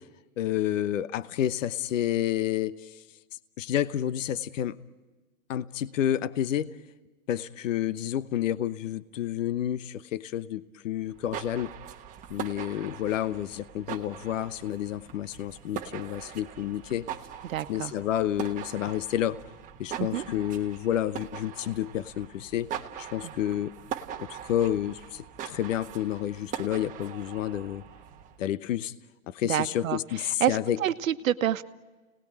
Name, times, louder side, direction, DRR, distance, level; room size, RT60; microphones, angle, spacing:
voice 1, 0.4-3.0 3.6-4.8 5.5-6.8 7.3-11.7 12.3-17.1 17.7-19.4 19.8-22.7 23.0-23.7 24.2-27.8 28.4-28.9 29.3-30.8, left 11 dB, 65° left, 1.0 m, -30 dB
sound 1, 11.1-28.4, right 9 dB, 20° right, 1.3 m, -41 dB
voice 2, 17.4-17.9 20.0-20.2 23.2-23.3 29.4-31.6, right 11 dB, 75° right, 1.3 m, -28 dB
30.0 x 19.5 x 8.9 m
hypercardioid pair, 150°, 41 cm